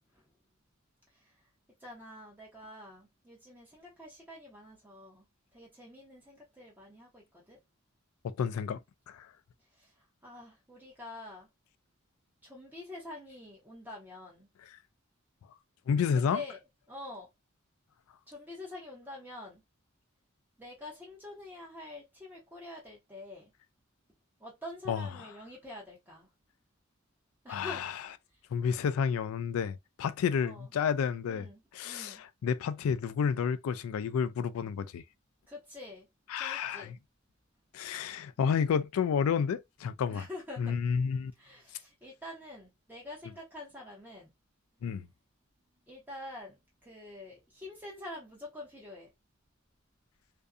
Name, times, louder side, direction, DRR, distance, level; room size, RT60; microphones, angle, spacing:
voice 1, 1.1-1.4 1.8-5.2 5.5-7.6 9.7-11.5 12.4-14.5 16.1-16.6 16.9-17.3 18.3-19.6 20.6-23.5 24.4-26.3 27.4-27.8 28.3-28.4 30.4-30.7 31.2-32.2 35.5-36.1 36.3-36.9 40.1-40.8 41.4-44.3 45.8-49.1, left 2 dB, 10° right, 0.8 m, -46 dB
voice 2, 8.2-8.8 9.1-9.3 15.9-16.4 24.9-25.1 27.5-27.9 28.5-31.5 31.7-35.0 36.3-36.9 37.7-40.3 40.6-41.3 44.8-45.1, left 6 dB, 80° left, 0.3 m, -30 dB
2.5 x 2.2 x 2.4 m
head